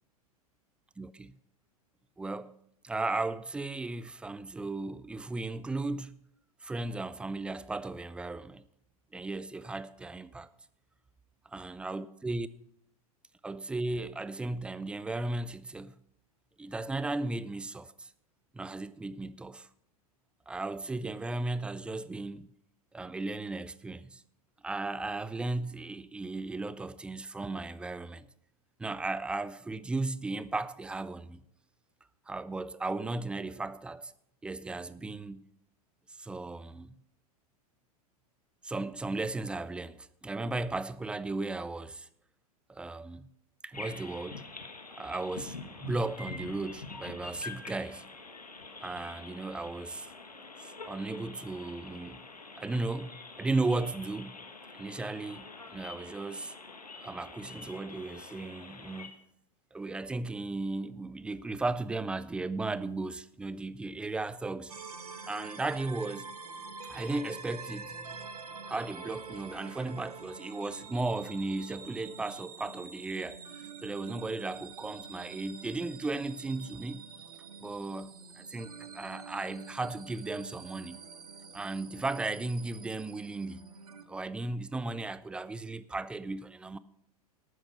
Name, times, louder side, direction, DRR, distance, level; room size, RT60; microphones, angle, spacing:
voice 1, 1.0-1.3 2.2-2.6 2.8-6.2 6.6-8.6 9.1-10.5 11.5-12.5 13.4-15.9 16.6-18.1 18.5-19.7 20.5-22.5 22.9-24.2 24.6-28.3 28.8-31.4 32.3-34.1 34.4-35.5 36.1-37.0 38.6-42.1 42.7-43.3 43.6-44.4 45.0-48.0 48.8-50.1 50.6-52.3 52.6-54.4 54.7-56.5 57.0-59.1 59.7-64.7 65.3-66.3 66.9-68.3 68.7-73.4 73.8-77.0 77.6-81.0 81.5-83.7 84.1-86.8, right 2 dB, 5° right, 0.3 m, -36 dB
sound 1, 43.7-59.1, left 3 dB, 85° left, 1.4 m, -46 dB
sound 2, 64.7-84.0, right 5 dB, 75° right, 1.2 m, -47 dB
12.5 x 9.0 x 5.6 m
figure-of-eight pair, 95°, 20 cm